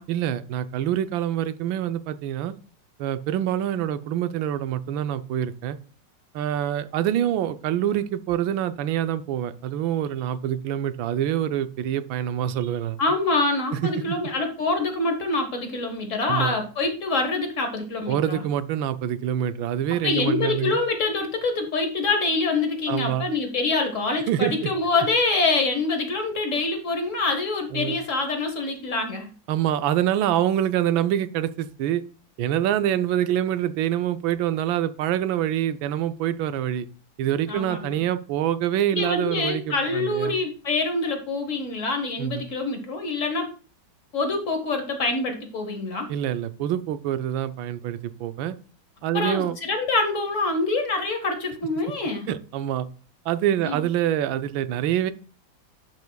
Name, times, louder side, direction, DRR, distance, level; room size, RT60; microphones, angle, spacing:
voice 1, 0.1-2.5 3.0-5.8 6.3-13.0 13.7-14.2 16.3-16.6 18.1-20.8 22.9-23.3 24.3-24.7 27.7-28.0 29.5-32.0 32.4-36.9 37.2-40.3 42.2-42.4 46.1-48.6 49.0-49.6 52.3-52.9 53.3-55.1, right 11 dB, 85° right, 12 dB, 1.4 m, -26 dB
voice 2, 13.0-18.4 20.0-29.3 37.5-38.0 38.9-43.5 44.1-46.1 49.1-52.3 53.6-53.8, left 3 dB, 45° left, 5 dB, 1.3 m, -25 dB
12.0 x 5.3 x 2.3 m, 0.38 s
omnidirectional pair, 2.1 m